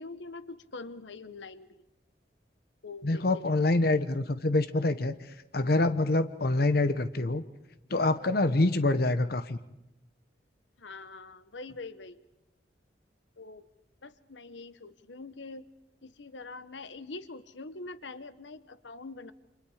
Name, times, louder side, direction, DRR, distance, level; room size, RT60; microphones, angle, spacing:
voice 1, 0.0-1.8 2.8-3.4 10.8-12.2 13.4-13.6 14.0-15.7 16.0-19.3, left 3 dB, 90° left, 13 dB, 1.1 m, -44 dB
voice 2, 3.0-5.1 5.5-7.4 7.9-9.6, left 2 dB, 55° left, 11 dB, 0.9 m, -26 dB
30.0 x 26.5 x 5.0 m, 0.91 s
head